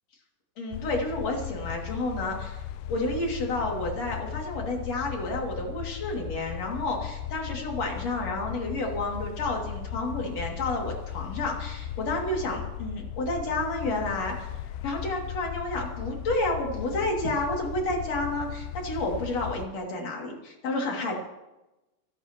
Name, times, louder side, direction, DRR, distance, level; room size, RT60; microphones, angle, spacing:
voice 1, 0.6-2.6 2.9-14.5 14.8-21.2, left 2 dB, 40° left, 0 dB, 3.5 m, -30 dB
sound 1, 0.7-19.7, left 11 dB, 85° left, 2.7 m, -37 dB
28.5 x 12.5 x 3.1 m, 1.0 s
omnidirectional pair, 4.8 m